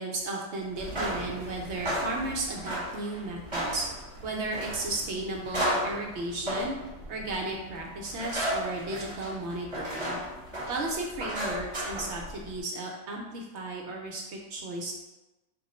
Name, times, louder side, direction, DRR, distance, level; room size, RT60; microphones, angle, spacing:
voice 1, 0.0-3.8 4.2-6.8 7.1-10.2 10.7-14.9, right 2 dB, 65° right, 0 dB, 0.8 m, -34 dB
sound 1, 0.7-12.6, equal, 20° right, 1.2 m, -35 dB
3.7 x 2.4 x 4.1 m, 1.0 s
omnidirectional pair, 1.4 m